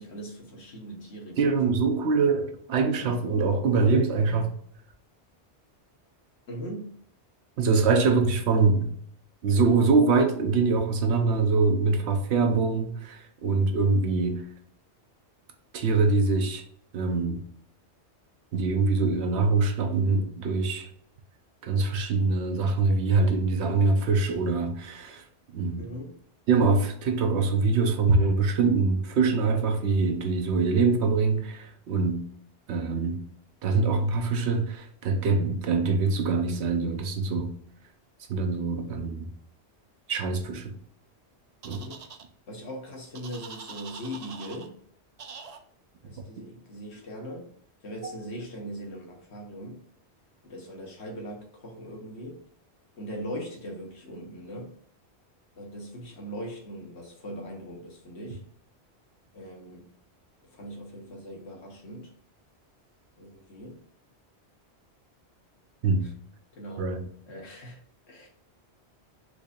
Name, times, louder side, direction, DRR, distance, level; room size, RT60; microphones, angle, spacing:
voice 1, 0.0-1.5 6.5-6.9 25.8-26.1 41.7-42.0 42.5-44.8 46.0-47.5 47.8-49.8 50.4-52.4 53.0-54.7 55.6-58.4 59.3-59.9 60.4-62.1 63.2-63.8 66.0-66.1 66.5-66.9 67.3-67.8 68.1-68.3, equal, 75° left, 1.3 m, -40 dB
voice 2, 1.4-4.5 7.6-8.9 9.4-14.4 15.7-16.6 16.9-17.4 18.5-20.9 21.6-25.2 25.5-25.9 26.5-32.3 32.7-33.2 33.6-37.5 38.3-39.3 40.1-40.7 41.6-41.8 65.8-66.1 66.8-67.0, right 4 dB, 75° right, 0.9 m, -24 dB
sound 1, 41.6-42.2 43.1-44.7 45.2-45.6, right 6 dB, 60° right, 0.4 m, -43 dB
4.5 x 2.6 x 2.3 m
omnidirectional pair, 1.1 m